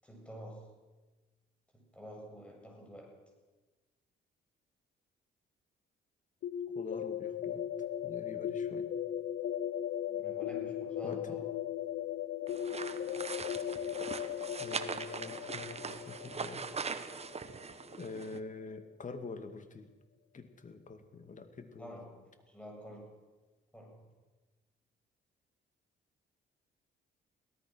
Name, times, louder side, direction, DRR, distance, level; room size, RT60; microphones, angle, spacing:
voice 1, 0.0-0.7 1.7-3.2 10.1-11.4 21.8-23.2 23.7-24.0, equal, 5° left, 0 dB, 7.7 m, -49 dB
sound 1, 6.4-18.1, left 10 dB, 70° left, 0.8 m, -38 dB
voice 2, 6.7-7.6 8.0-8.9 11.0-11.4 14.6-16.7 18.0-19.9 20.3-22.0, left 4 dB, 40° left, 8 dB, 2.4 m, -45 dB
sound 2, 12.5-18.4, right 5 dB, 30° right, 1.4 m, -41 dB
24.0 x 17.5 x 6.4 m, 1.2 s
cardioid pair, 90°, 20 cm